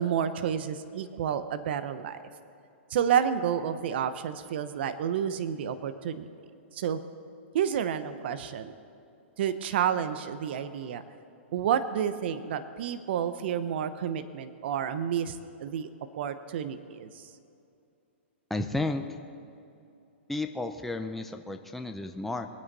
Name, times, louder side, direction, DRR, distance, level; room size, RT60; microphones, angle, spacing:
voice 1, 0.0-2.2 2.9-6.3 6.7-7.0 7.5-8.7 9.4-11.0 11.5-15.9 16.2-17.2, right 8 dB, 60° right, 11 dB, 0.8 m, -30 dB
voice 2, 18.5-19.0 20.3-22.5, left 2 dB, ahead, 5 dB, 0.6 m, -32 dB
22.0 x 9.0 x 4.1 m, 2.6 s
hypercardioid pair, 140°, 7 cm